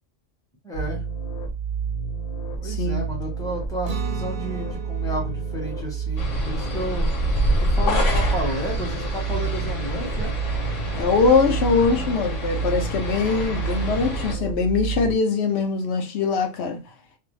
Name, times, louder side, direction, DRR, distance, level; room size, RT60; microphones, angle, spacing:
voice 1, 0.6-1.0 2.6-7.1 7.6-10.3, equal, 5° left, 0.8 m, -32 dB
sound 1, 0.7-15.1, right 6 dB, 35° left, 1.1 m, -29 dB
voice 2, 2.6-3.0 10.9-16.8, left 4 dB, 65° left, 0.9 m, -22 dB
Guitar, 3.8-9.7, right 2 dB, 55° right, 0.6 m, -40 dB
sound 2, 6.2-14.3, equal, 85° left, 1.2 m, -26 dB
2.6 x 2.0 x 3.0 m
omnidirectional pair, 1.3 m